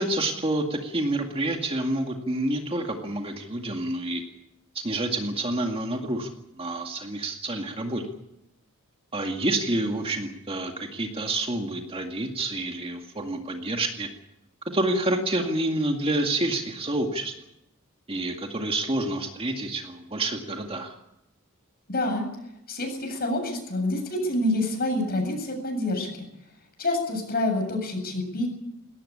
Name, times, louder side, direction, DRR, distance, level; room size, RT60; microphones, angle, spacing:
voice 1, 0.0-4.2 4.8-6.3 6.6-8.0 9.1-14.1 14.7-17.3 18.1-21.0, right 2 dB, 25° right, 4 dB, 2.1 m, -28 dB
voice 2, 21.9-22.2 22.7-26.3 26.8-28.5, left 1 dB, 45° left, 4 dB, 7.9 m, -27 dB
20.5 x 18.0 x 8.7 m, 0.82 s
head